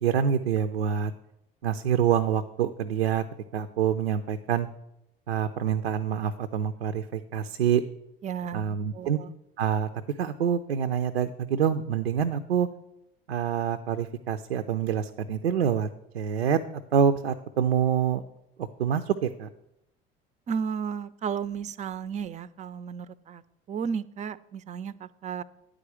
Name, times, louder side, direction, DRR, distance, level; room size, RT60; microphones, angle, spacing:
voice 1, 0.0-1.1 1.6-3.2 3.5-4.7 5.3-7.8 8.5-9.2 9.6-9.9 10.2-12.7 13.3-15.9 16.1-16.6 16.9-18.2 18.6-19.5, right 8 dB, 80° right, 8 dB, 0.5 m, -26 dB
voice 2, 8.2-9.3 20.5-23.4 23.7-25.4, right 7 dB, 25° right, 17 dB, 0.4 m, -33 dB
9.5 x 5.0 x 8.0 m, 0.84 s
figure-of-eight pair, 65°, 30 cm